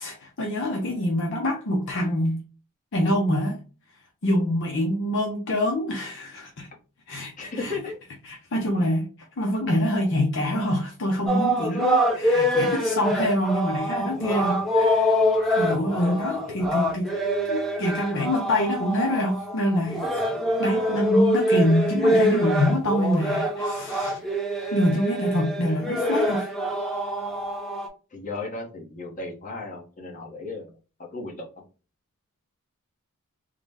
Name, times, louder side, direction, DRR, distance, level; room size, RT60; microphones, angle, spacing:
voice 1, 0.0-2.4 2.9-3.6 4.2-6.7 7.1-7.8 8.2-9.1 9.4-15.2 15.6-17.1 17.5-20.3 20.6-24.2 24.5-26.4, equal, 55° left, 0.6 m, -25 dB
voice 2, 7.4-8.0 11.7-11.8 16.0-16.4 28.1-30.7 31.1-31.4, left 3 dB, 35° left, 1.0 m, -35 dB
sound 1, 11.3-27.9, equal, ahead, 0.5 m, -25 dB
3.7 x 2.1 x 3.4 m
head